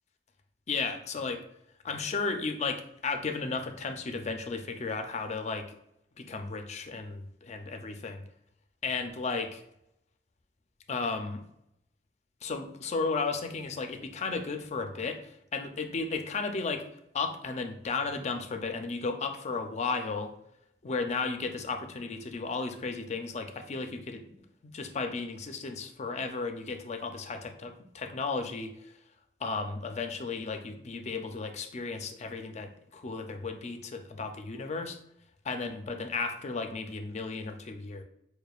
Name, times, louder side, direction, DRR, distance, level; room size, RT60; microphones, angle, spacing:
voice 1, 0.7-1.4 1.9-5.7 6.2-8.2 8.8-9.6 10.9-11.4 12.4-16.8 17.1-20.3 20.8-24.3 24.6-28.7 29.4-35.0 35.5-38.0, left 4 dB, 40° left, 6 dB, 0.4 m, -34 dB
6.6 x 2.2 x 2.3 m, 0.76 s
head